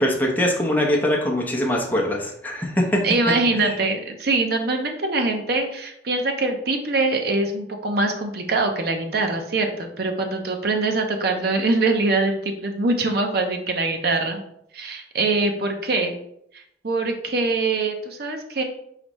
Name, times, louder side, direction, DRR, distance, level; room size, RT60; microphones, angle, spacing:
voice 1, 0.0-3.1 3.5-3.7, left 1 dB, 10° left, -1 dB, 0.8 m, -22 dB
voice 2, 3.0-14.4 14.7-16.1 16.5-18.6, right 3 dB, 60° right, 4 dB, 0.7 m, -23 dB
4.9 x 3.2 x 3.1 m, 0.73 s
head